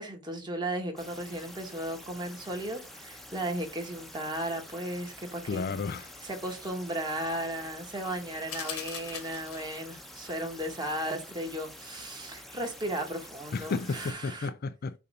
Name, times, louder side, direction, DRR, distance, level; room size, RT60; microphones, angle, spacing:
voice 1, 0.0-5.8 6.2-14.5, right 1 dB, 20° right, 1.5 m, -35 dB
sound 1, 1.0-14.1, left 1 dB, ahead, 0.9 m, -48 dB
voice 2, 5.5-6.1 13.5-15.0, left 4 dB, 45° left, 0.4 m, -32 dB
sound 2, 8.5-10.0, left 8 dB, 80° left, 1.3 m, -40 dB
6.7 x 2.7 x 5.5 m
head